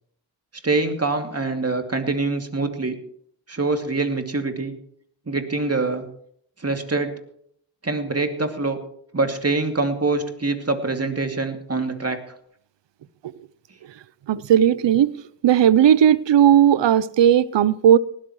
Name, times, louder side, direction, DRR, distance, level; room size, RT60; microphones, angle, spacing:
voice 1, 0.6-2.9 3.5-4.8 5.3-6.0 6.6-7.1 7.8-8.8 9.1-12.2, right 3 dB, 30° right, 5 dB, 2.5 m, -24 dB
voice 2, 14.3-15.1 15.4-18.0, right 10 dB, 60° right, 20 dB, 0.7 m, -16 dB
18.5 x 13.5 x 3.1 m, 0.64 s
supercardioid pair, 40°, 49 cm